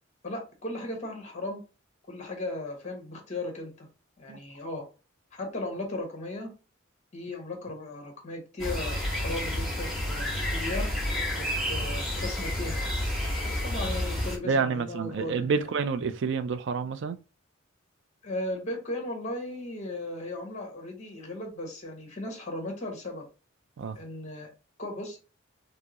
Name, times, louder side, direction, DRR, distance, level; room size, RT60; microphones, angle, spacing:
voice 1, 0.2-1.6 2.1-3.9 4.2-4.9 5.3-6.5 7.1-10.9 11.3-13.0 13.4-15.7 18.2-23.3 23.9-24.5 24.8-25.4, left 2 dB, 35° left, 1.2 m, -36 dB
sound 1, 8.6-14.4, left 1 dB, ahead, 1.2 m, -30 dB
voice 2, 14.4-17.2 23.8-24.0, right 5 dB, 60° right, 0.4 m, -28 dB
4.4 x 2.0 x 2.8 m
head